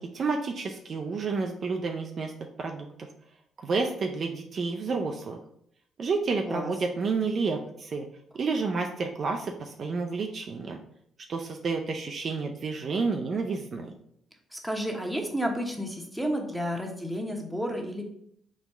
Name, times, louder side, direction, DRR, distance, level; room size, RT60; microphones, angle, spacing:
voice 1, 0.0-2.3 2.6-3.1 3.6-5.4 6.0-8.1 8.3-10.8 11.3-13.9, right 4 dB, 50° right, 3 dB, 0.4 m, -30 dB
voice 2, 14.5-18.1, equal, 5° right, 1 dB, 0.9 m, -31 dB
4.2 x 2.2 x 4.2 m, 0.71 s
hypercardioid pair, 45°, 0 cm